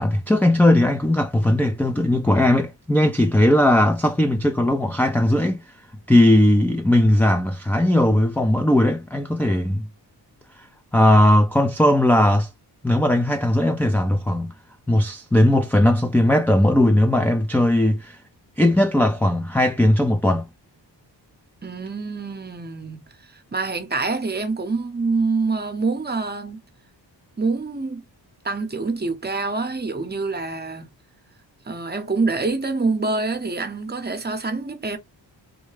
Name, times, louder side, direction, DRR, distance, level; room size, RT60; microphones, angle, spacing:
voice 1, 0.0-5.6 6.1-9.9 10.6-10.7 10.9-12.5 12.8-14.5 14.9-18.2 18.6-20.5, left 1 dB, 5° left, 0.3 m, -18 dB
voice 2, 21.6-23.0 23.5-26.6 27.4-28.0 28.4-30.9 31.7-35.0, right 3 dB, 25° right, 0.8 m, -26 dB
3.7 x 2.2 x 3.1 m
cardioid pair, 95°, 43 cm